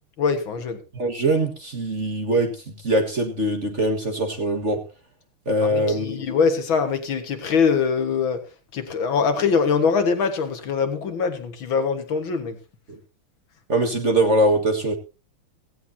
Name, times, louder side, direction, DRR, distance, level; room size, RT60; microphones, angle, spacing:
voice 1, 0.2-0.8 5.6-8.4 8.7-12.6, left 5 dB, 65° left, 2.2 m, -23 dB
voice 2, 0.9-4.8 5.4-6.2 12.9-13.0 13.7-15.0, right 1 dB, 35° right, 1.7 m, -22 dB
16.5 x 16.0 x 2.7 m
omnidirectional pair, 2.4 m